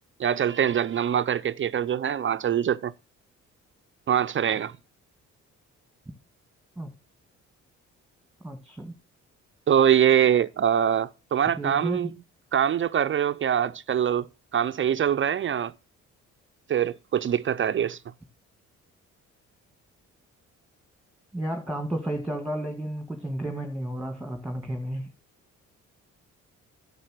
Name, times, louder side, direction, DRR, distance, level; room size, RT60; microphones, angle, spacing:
voice 1, 0.2-2.9 4.1-4.7 9.7-12.1 12.5-15.7 16.7-18.0, right 9 dB, 40° right, 0.5 m, -24 dB
voice 2, 8.4-8.9 11.6-12.2 21.3-25.1, right 1 dB, ahead, 1.9 m, -32 dB
11.0 x 6.8 x 6.5 m
cardioid pair, 90°, 30 cm